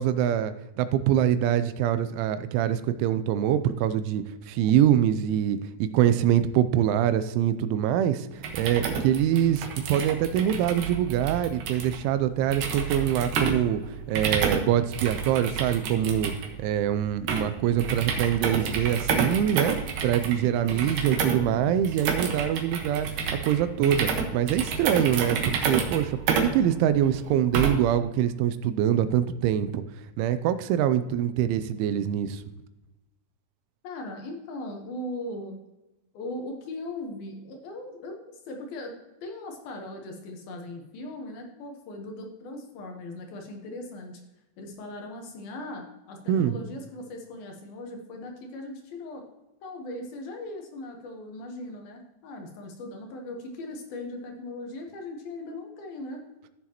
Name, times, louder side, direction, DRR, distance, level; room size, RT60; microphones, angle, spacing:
voice 1, 0.0-8.3 8.5-13.8 14.1-16.3 16.6-19.8 20.0-23.1 23.4-29.8 30.2-32.4 46.3-46.6, right 10 dB, 85° right, 12 dB, 2.9 m, -24 dB
sound 1, 8.3-28.0, right 5 dB, 70° right, 2.2 m, -30 dB
voice 2, 20.7-22.0 33.8-35.6 36.1-38.9 39.2-44.2 44.6-49.2 49.6-56.2, left 1 dB, 70° left, 3 dB, 2.4 m, -39 dB
14.5 x 7.1 x 2.9 m, 1.0 s
omnidirectional pair, 5.5 m